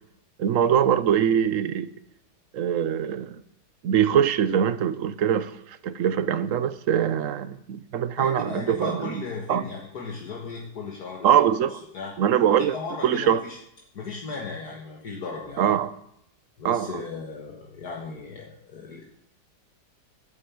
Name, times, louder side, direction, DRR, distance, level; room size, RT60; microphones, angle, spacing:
voice 1, 0.4-1.9 2.5-3.4 3.8-9.2 9.5-9.7 11.2-11.8 12.2-12.8 13.0-13.4 15.6-15.9 16.6-17.0, right 9 dB, 60° right, 0.9 m, -23 dB
voice 2, 8.2-11.5 11.9-12.1 12.7-13.6 13.9-15.6 16.6-19.0, left 4 dB, 65° left, 2.1 m, -36 dB
11.0 x 9.7 x 8.4 m
omnidirectional pair, 1.8 m